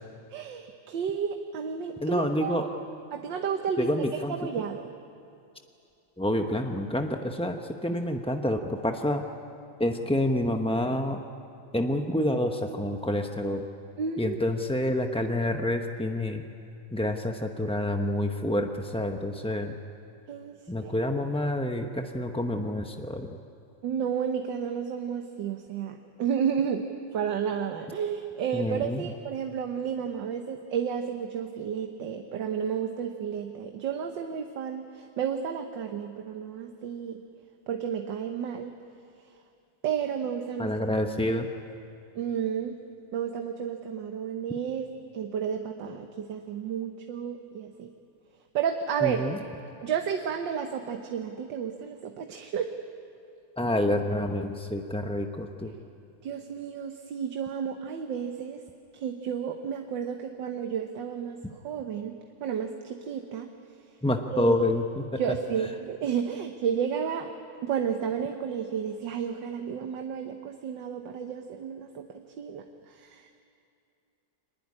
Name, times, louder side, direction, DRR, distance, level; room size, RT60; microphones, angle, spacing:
voice 1, 0.3-2.8 3.1-4.9 14.0-14.4 20.3-21.1 23.8-26.9 27.1-37.2 37.7-38.8 39.8-40.7 42.1-42.8 43.1-47.9 48.5-49.3 49.8-52.7 56.2-58.6 58.9-63.5 64.3-64.6 65.2-67.3 67.6-72.1 72.4-73.4, right 7 dB, 75° right, 5 dB, 1.7 m, -32 dB
voice 2, 2.0-2.7 3.8-4.5 6.2-9.2 9.8-11.2 11.7-13.7 14.2-16.4 16.9-19.7 20.7-23.4 28.5-29.0 40.6-41.5 49.0-49.4 53.6-55.7 64.0-65.2, left 1 dB, 10° left, 4 dB, 0.3 m, -28 dB
24.0 x 20.0 x 9.8 m, 2.6 s
omnidirectional pair, 2.0 m